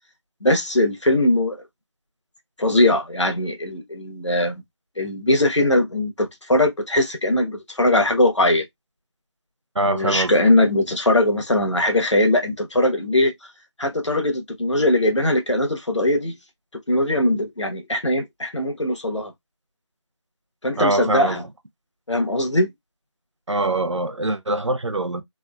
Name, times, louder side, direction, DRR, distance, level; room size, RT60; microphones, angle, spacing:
voice 1, 0.4-1.6 2.6-4.6 5.0-8.6 9.8-13.3 13.8-16.3 16.9-19.3 20.6-21.4 22.1-22.7, left 1 dB, 70° left, 1.0 m, -20 dB
voice 2, 9.7-10.3 20.8-21.5 23.5-25.2, right 2 dB, 70° right, 0.7 m, -23 dB
3.5 x 2.1 x 2.3 m
figure-of-eight pair, 170°, 16 cm